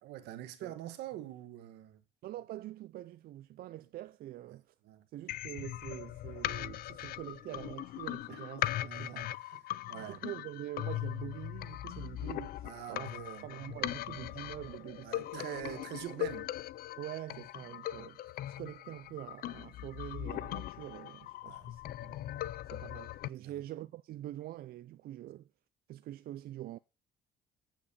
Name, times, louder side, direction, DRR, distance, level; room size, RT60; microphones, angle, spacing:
voice 1, 0.0-2.0 4.8-5.1 8.3-10.2 12.6-13.5 15.0-16.5 21.4-21.7 23.4-23.7, right 13 dB, 85° right, 1.5 m, -45 dB
voice 2, 2.2-4.7 5.1-9.4 10.1-13.1 13.4-15.9 17.0-22.2 22.7-25.5 25.9-26.8, right 14 dB, 65° right, 0.5 m, -45 dB
sound 1, 5.3-23.3, left 14 dB, 60° left, 0.4 m, -40 dB
8.7 x 5.1 x 7.1 m
cardioid pair, 110°, 17 cm